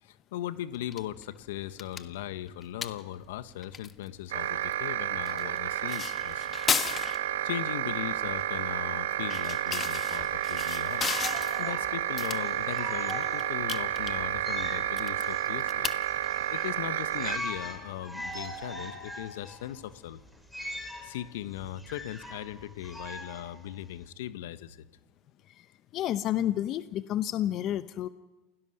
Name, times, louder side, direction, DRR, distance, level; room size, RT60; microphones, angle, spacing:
voice 1, 0.0-6.5 7.4-11.1 11.6-15.9 16.5-20.2 21.0-24.8, left 12 dB, 75° left, 12 dB, 1.4 m, -38 dB
sound 1, 0.7-19.1, left 6 dB, 25° left, 1.4 m, -38 dB
sound 2, 4.3-17.4, right 13 dB, 85° right, 1.1 m, -31 dB
sound 3, 11.1-24.1, left 1 dB, ahead, 5.0 m, -42 dB
voice 2, 25.9-28.1, left 12 dB, 45° left, 12 dB, 0.8 m, -30 dB
28.5 x 17.5 x 6.7 m, 1.1 s
hypercardioid pair, 105°, 0 cm